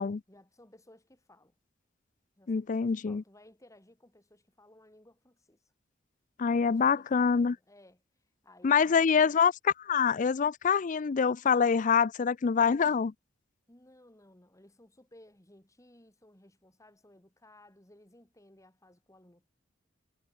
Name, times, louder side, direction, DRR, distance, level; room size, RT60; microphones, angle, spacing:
voice 1, 0.3-1.5 2.4-5.6 6.5-8.0 8.4-9.3 13.7-19.5, left 1 dB, 15° left, 3.2 m, -58 dB
voice 2, 2.5-3.2 6.4-7.5 8.6-13.1, left 6 dB, 40° left, 0.4 m, -25 dB
head